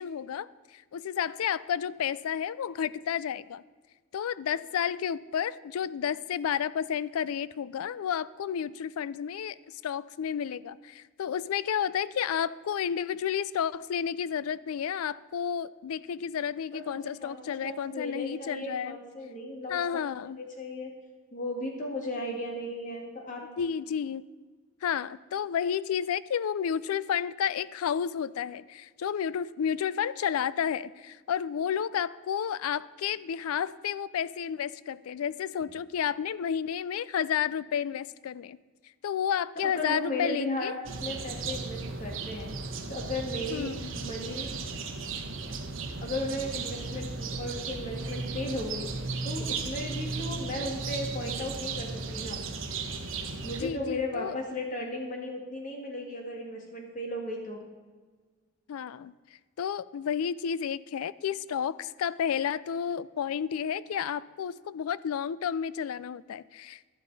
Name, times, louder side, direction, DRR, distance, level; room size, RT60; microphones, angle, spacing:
voice 1, 0.0-3.6 4.1-19.0 19.7-20.4 23.6-24.2 24.8-38.6 39.0-40.8 43.5-43.9 53.6-54.4 58.7-59.1 59.6-66.9, left 8 dB, 90° left, 19 dB, 0.3 m, -31 dB
voice 2, 16.7-20.9 21.3-23.4 39.6-40.7 41.0-42.5 42.9-44.5 46.0-52.4 53.4-57.6, left 1 dB, 35° left, 0 dB, 1.9 m, -36 dB
sound 1, 40.9-53.7, right 4 dB, 65° right, 1.0 m, -35 dB
11.5 x 11.0 x 4.0 m, 1.4 s
head